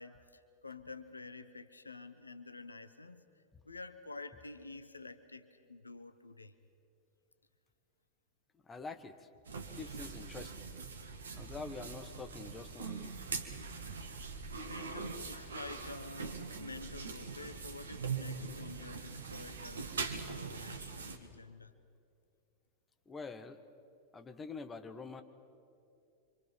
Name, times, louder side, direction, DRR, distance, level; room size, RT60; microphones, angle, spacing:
voice 1, 0.0-3.2 3.6-6.5 9.6-9.8 14.1-21.8, left 3 dB, 80° left, 10 dB, 1.0 m, -49 dB
voice 2, 8.6-9.3 9.7-10.6 11.4-13.2 23.1-23.6 24.1-25.2, left 4 dB, 15° left, 8 dB, 1.4 m, -46 dB
sound 1, 9.5-21.2, right 5 dB, 70° right, 1.7 m, -42 dB
27.5 x 25.5 x 5.8 m, 2.5 s
figure-of-eight pair, 90°, 0 cm